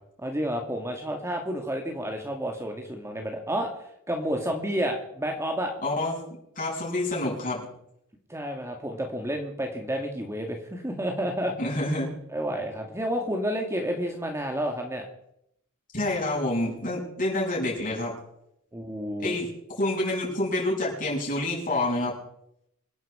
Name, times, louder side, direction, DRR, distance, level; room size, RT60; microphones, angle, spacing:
voice 1, 0.2-5.7 8.3-11.5 12.3-15.1 18.7-19.3, equal, 15° right, 3 dB, 1.9 m, -30 dB
voice 2, 5.8-6.2 6.6-7.7 11.6-12.1 15.9-18.1 19.2-19.5 19.8-22.1, left 1 dB, 40° left, -3 dB, 7.6 m, -27 dB
26.0 x 11.0 x 4.9 m, 0.76 s
head